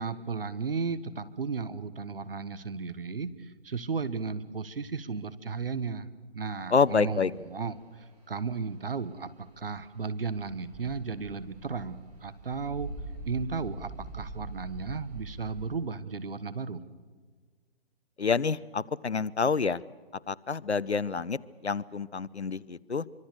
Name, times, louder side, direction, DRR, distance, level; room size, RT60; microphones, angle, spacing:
voice 1, 0.0-6.1 6.3-12.9 13.2-16.8, right 5 dB, 55° right, 14 dB, 1.4 m, -34 dB
sound 1, 6.6-15.7, right 2 dB, 40° right, 6.9 m, -44 dB
voice 2, 6.7-7.3 18.2-19.8 20.3-23.0, left 5 dB, 75° left, 22 dB, 0.8 m, -28 dB
24.5 x 24.5 x 6.9 m, 1.5 s
figure-of-eight pair, 140°, 33 cm